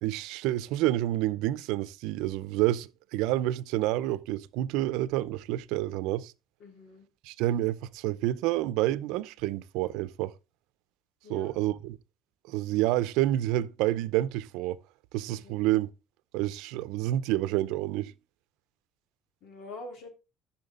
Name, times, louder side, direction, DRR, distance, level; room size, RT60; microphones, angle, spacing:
voice 1, 0.0-6.3 7.2-10.3 11.3-12.0 12.5-14.8 15.1-15.9 16.3-18.1, right 15 dB, 85° right, 0.6 m, -28 dB
voice 2, 6.6-7.1 11.2-11.6 15.3-15.5 19.4-20.1, left 3 dB, 60° left, 3.4 m, -45 dB
14.0 x 5.9 x 3.8 m
cardioid pair, 165°, 0 cm